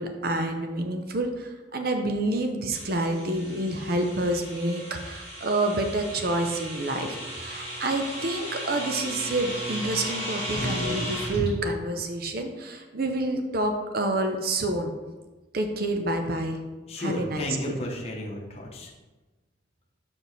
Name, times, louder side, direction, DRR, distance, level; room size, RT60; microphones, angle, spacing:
voice 1, 0.0-14.9 15.5-16.6 17.0-17.7, right 2 dB, 50° right, 4 dB, 0.6 m, -28 dB
sound 1, 2.7-11.5, equal, 30° right, 2.2 m, -35 dB
voice 2, 16.9-18.9, left 1 dB, 30° left, -1 dB, 0.9 m, -33 dB
6.9 x 4.6 x 4.0 m, 1.2 s
head